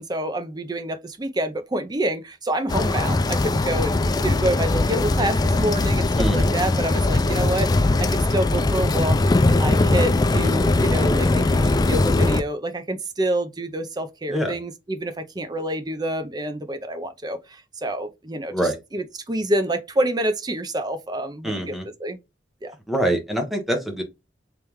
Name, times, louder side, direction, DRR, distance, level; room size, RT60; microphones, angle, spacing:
voice 1, 0.0-9.2 9.6-18.5 18.9-22.2 22.6-22.7, right 1 dB, 25° right, 0.6 m, -27 dB
sound 1, 2.7-12.4, left 2 dB, 20° left, 0.3 m, -20 dB
voice 2, 6.2-6.5 14.3-14.5 18.5-18.8 21.4-21.9 22.9-24.0, right 1 dB, ahead, 1.1 m, -24 dB
3.5 x 3.3 x 3.0 m
head